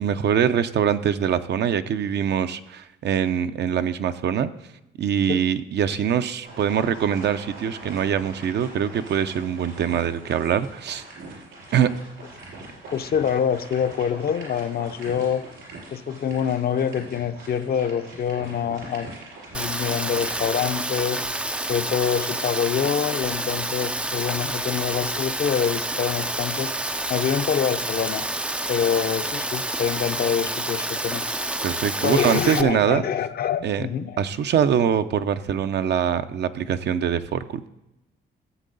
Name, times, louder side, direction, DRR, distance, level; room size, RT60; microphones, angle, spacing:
voice 1, 0.0-4.5 5.0-11.0 11.7-11.9 31.6-33.0 33.6-33.9 34.2-37.7, right 8 dB, 60° right, 10 dB, 0.6 m, -23 dB
sound 1, 6.4-20.8, right 2 dB, 80° right, 4.5 m, -42 dB
voice 2, 12.9-15.5 15.9-19.1 19.5-21.2 21.7-26.7 27.1-28.3 28.7-31.3 32.0-34.2, left 8 dB, 50° left, 9 dB, 0.6 m, -25 dB
Rain, 19.5-32.6, right 1 dB, 5° right, 0.3 m, -28 dB
14.0 x 7.5 x 3.9 m, 0.95 s
cardioid pair, 90°, 20 cm